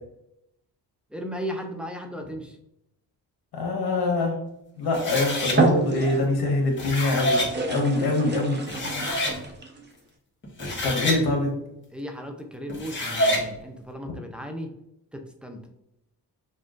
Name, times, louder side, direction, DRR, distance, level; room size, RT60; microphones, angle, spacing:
voice 1, 1.1-2.6 7.9-8.1 10.7-11.0 11.9-14.7 15.1-15.6, equal, 5° right, 2 dB, 0.5 m, -36 dB
voice 2, 3.5-4.4 4.8-7.4 7.7-8.6 10.8-11.5, left 2 dB, 70° left, 1 dB, 1.3 m, -24 dB
sound 1, 4.8-5.1 5.5-6.5 7.1-9.8, right 3 dB, 25° right, 0.9 m, -28 dB
sound 2, 4.9-5.6 6.6-7.5 8.3-8.4 8.7-9.4 10.4-11.2 12.7-13.4, left 1 dB, 30° left, 1.2 m, -27 dB
5.7 x 2.4 x 2.5 m, 0.81 s
cardioid pair, 85°, 39 cm